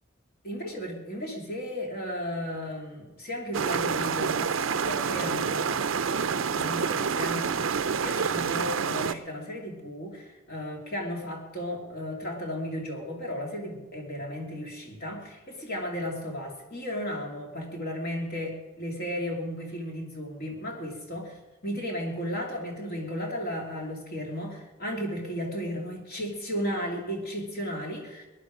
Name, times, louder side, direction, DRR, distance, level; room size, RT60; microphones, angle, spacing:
voice 1, 0.4-21.4 21.6-28.1, equal, 50° left, 0 dB, 2.8 m, -34 dB
sound 1, 3.5-9.1, right 6 dB, 70° right, 0.5 m, -28 dB
21.0 x 10.5 x 5.0 m, 1.2 s
head